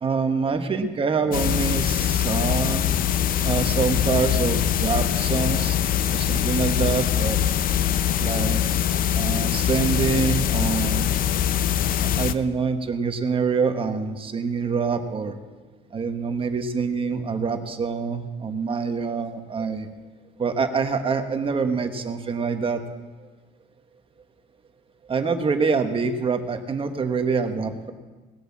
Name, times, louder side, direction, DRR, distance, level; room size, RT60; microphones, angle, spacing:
voice 1, 0.0-2.9 3.4-5.8 6.1-7.4 8.2-8.6 9.1-11.1 12.0-15.4 15.9-19.9 20.4-22.8 25.1-27.9, right 5 dB, 30° right, 7 dB, 1.3 m, -25 dB
sound 1, 1.3-12.3, left 10 dB, 55° left, 0.7 m, -23 dB
19.0 x 8.1 x 7.3 m, 1.3 s
cardioid pair, 110°, 17 cm